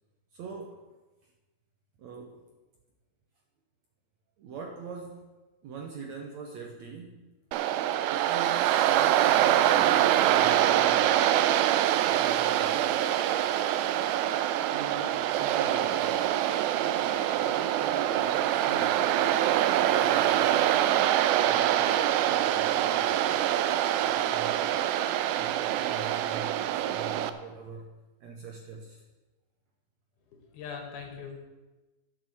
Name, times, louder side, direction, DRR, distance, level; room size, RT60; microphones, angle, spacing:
voice 1, 0.3-1.0 1.2-1.3 2.0-2.4 4.4-5.3 5.6-7.3 8.1-11.2 12.0-12.9 14.7-16.2 16.8-24.8 25.4-27.9 28.2-29.0, right 5 dB, 70° right, 2 dB, 1.8 m, -43 dB
Waves surf, 7.5-27.3, right 12 dB, 85° right, 2.5 m, -25 dB
voice 2, 30.3-31.4, left 6 dB, 80° left, 3 dB, 3.6 m, -41 dB
10.5 x 7.1 x 7.7 m, 1.2 s
omnidirectional pair, 4.3 m